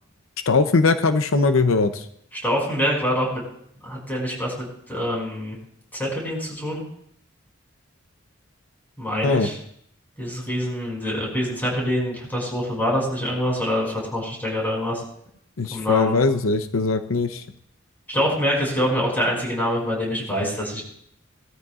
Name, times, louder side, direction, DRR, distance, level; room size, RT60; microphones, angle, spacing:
voice 1, 0.5-2.1 9.2-9.5 15.6-17.4, left 3 dB, 90° left, 9 dB, 0.7 m, -20 dB
voice 2, 2.4-3.4 3.8-5.6 6.0-6.8 9.0-9.5 10.2-15.0 15.7-16.1 18.1-20.8, equal, 10° left, -2 dB, 5.7 m, -25 dB
20.0 x 13.5 x 2.5 m, 0.69 s
head